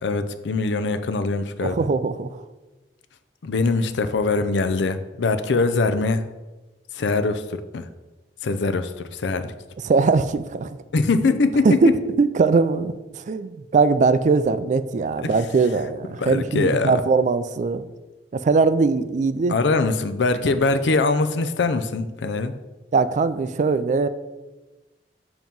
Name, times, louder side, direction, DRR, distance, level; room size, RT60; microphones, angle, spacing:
voice 1, 0.0-1.8 3.4-6.2 6.9-7.9 8.4-9.5 10.9-11.7 15.2-15.3 16.2-17.0 19.5-22.5, left 3 dB, 85° left, 10 dB, 0.5 m, -22 dB
voice 2, 1.6-2.3 9.8-10.7 11.6-11.9 12.2-17.9 18.3-19.5 22.9-24.1, right 4 dB, 45° right, 13 dB, 0.3 m, -20 dB
7.2 x 3.0 x 5.3 m, 1.1 s
head